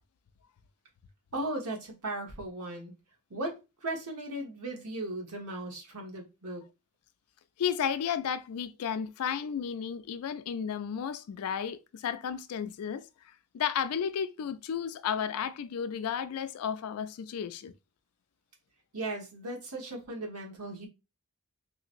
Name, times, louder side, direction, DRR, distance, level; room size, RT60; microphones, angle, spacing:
voice 1, 1.3-2.9 3.3-6.6 18.9-20.9, right 1 dB, 85° right, 1.2 m, -37 dB
voice 2, 7.6-13.1 13.5-17.7, left 8 dB, 75° left, 0.3 m, -33 dB
3.1 x 2.8 x 2.5 m
head